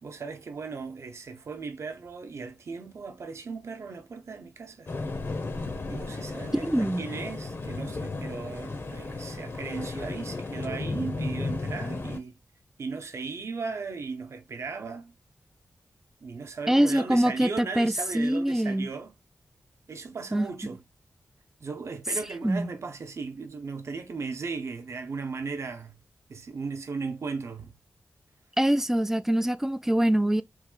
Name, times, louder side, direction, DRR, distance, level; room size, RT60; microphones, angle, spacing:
voice 1, 0.0-4.9 5.9-12.4 12.8-15.1 16.2-19.1 19.9-20.8 21.6-26.0 26.3-27.7, right 4 dB, 70° right, 0.7 m, -37 dB
sound 1, 4.9-12.2, left 3 dB, 55° left, 0.8 m, -34 dB
voice 2, 6.7-7.0 16.7-18.9 20.3-20.5 22.4-22.7 28.6-30.4, right 1 dB, 10° right, 0.4 m, -24 dB
3.2 x 2.4 x 3.7 m
cardioid pair, 65°, 5 cm